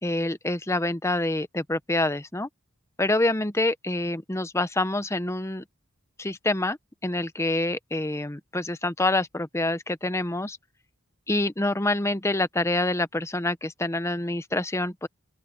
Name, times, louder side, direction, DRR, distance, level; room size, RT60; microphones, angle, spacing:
voice 1, 0.0-2.5 3.0-5.6 6.2-6.8 7.0-10.6 11.3-15.1, left 2 dB, 15° left, 0.8 m, -26 dB
open air
head